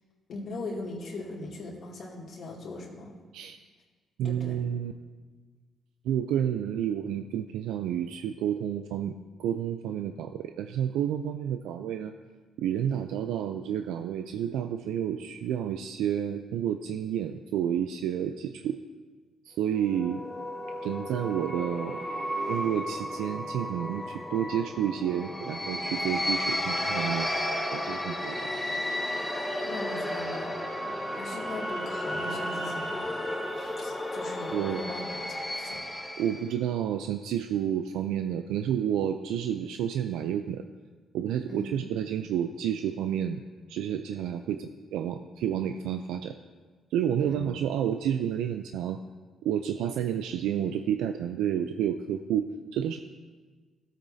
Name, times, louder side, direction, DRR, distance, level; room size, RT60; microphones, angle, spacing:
voice 1, 0.3-3.2 4.2-4.6 29.6-30.8 31.1-33.1 33.5-35.8 41.5-41.7 47.2-47.5, left 2 dB, 60° left, -3 dB, 2.3 m, -40 dB
voice 2, 4.2-4.9 6.0-12.1 12.6-18.8 19.4-20.2 20.8-22.0 22.5-27.3 27.7-28.4 34.5-34.8 36.2-40.6 41.1-43.4 43.7-46.4 46.9-49.0 49.4-53.0, right 9 dB, 90° right, 7 dB, 0.4 m, -30 dB
sound 1, 19.7-36.5, left 1 dB, 10° left, 1.2 m, -33 dB
17.0 x 8.3 x 2.7 m, 1.4 s
cardioid pair, 90°, 0 cm